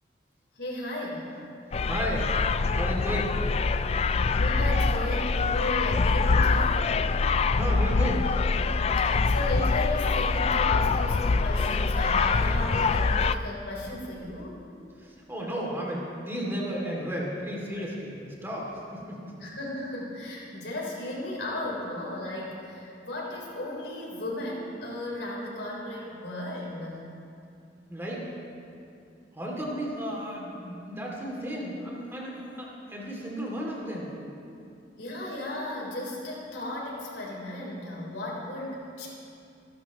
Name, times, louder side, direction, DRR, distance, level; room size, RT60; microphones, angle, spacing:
voice 1, 0.6-1.3 4.4-6.9 9.0-14.6 19.4-27.0 35.0-39.1, left 1 dB, 75° left, -3 dB, 3.9 m, -35 dB
sound 1, 1.7-13.4, left 4 dB, 35° left, 0.3 m, -24 dB
voice 2, 1.8-2.4 2.7-3.6 7.6-8.4 15.0-19.4 27.9-28.2 29.3-34.1, equal, 15° right, -3 dB, 2.6 m, -34 dB
27.5 x 12.0 x 3.1 m, 2.6 s
head